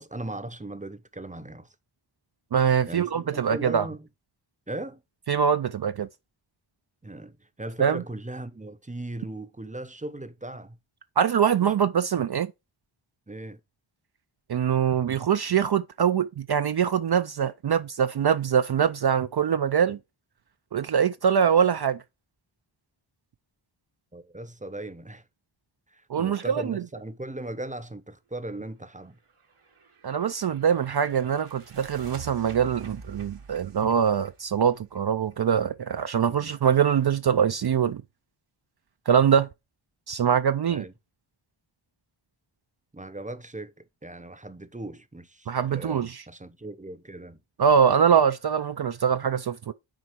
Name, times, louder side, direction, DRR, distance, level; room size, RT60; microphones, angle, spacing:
voice 1, 0.0-1.7 2.9-4.1 4.7-5.0 7.0-10.8 11.6-11.7 13.3-13.6 24.1-25.2 25.9-29.2 36.3-36.5 40.7-40.9 42.9-47.4, right 2 dB, 15° right, 0.7 m, -38 dB
voice 2, 2.5-3.9 5.3-6.1 7.8-8.0 11.2-12.5 14.5-20.0 20.7-22.0 26.1-26.8 30.0-38.0 39.1-39.5 40.1-40.8 45.5-46.2 47.6-49.7, right 7 dB, 50° right, 0.5 m, -23 dB
sound 1, 29.6-35.3, right 5 dB, 80° right, 1.4 m, -46 dB
6.3 x 4.2 x 4.5 m
wide cardioid pair, 50°, 50 cm